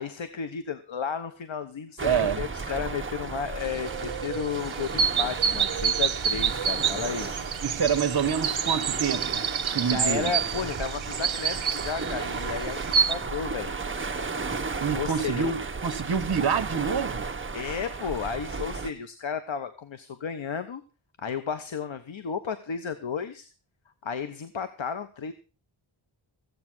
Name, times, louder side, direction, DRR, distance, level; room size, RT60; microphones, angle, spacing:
voice 1, 0.0-7.3 9.8-13.7 14.9-15.5 17.5-20.8 21.2-23.5 24.0-25.3, left 6 dB, 70° left, 1.1 m, -33 dB
sound 1, 2.0-18.9, right 4 dB, 25° right, 1.0 m, -34 dB
voice 2, 2.0-2.5 7.6-10.3 14.8-17.2, right 7 dB, 50° right, 1.3 m, -27 dB
sound 2, 3.6-13.1, right 7 dB, 70° right, 1.0 m, -28 dB
15.0 x 8.6 x 6.1 m
wide cardioid pair, 115°, 48 cm